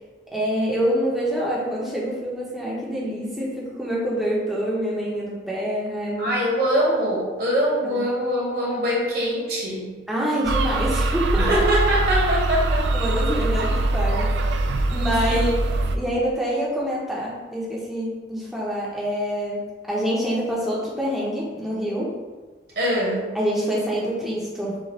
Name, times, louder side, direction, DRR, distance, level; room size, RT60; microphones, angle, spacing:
voice 1, 0.3-6.4 7.8-8.0 10.1-11.5 12.9-14.4 14.9-22.1 23.3-24.8, equal, ahead, -7 dB, 0.6 m, -26 dB
voice 2, 6.2-9.9 11.4-12.9 15.3-15.5 22.7-23.2, equal, 55° right, -4 dB, 1.2 m, -23 dB
sound 1, 10.4-16.0, right 2 dB, 75° right, 0.4 m, -22 dB
6.6 x 2.4 x 3.0 m, 1.3 s
head